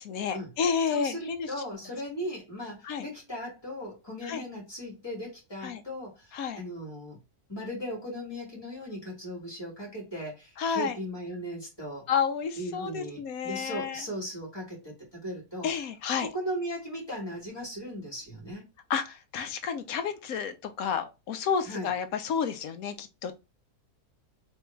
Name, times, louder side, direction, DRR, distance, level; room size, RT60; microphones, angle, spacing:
voice 1, 0.0-1.5 2.8-3.0 4.2-4.4 5.6-5.8 6.3-6.6 10.6-11.0 12.1-14.0 15.6-16.3 18.9-23.3, left 6 dB, 70° left, 1.1 m, -30 dB
voice 2, 0.9-7.2 7.5-12.1 12.6-15.7 16.2-18.7 21.6-21.9, equal, 15° left, 2.2 m, -37 dB
3.5 x 3.4 x 3.1 m
omnidirectional pair, 1.6 m